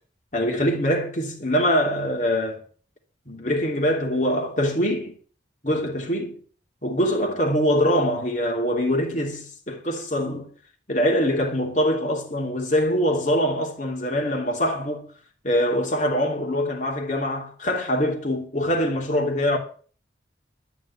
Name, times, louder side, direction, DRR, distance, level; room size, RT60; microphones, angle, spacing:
voice 1, 0.3-2.6 3.3-5.1 5.6-6.4 6.8-10.5 10.9-15.1 15.4-19.6, equal, 40° left, 3.0 m, -23 dB
12.0 x 6.2 x 8.7 m
head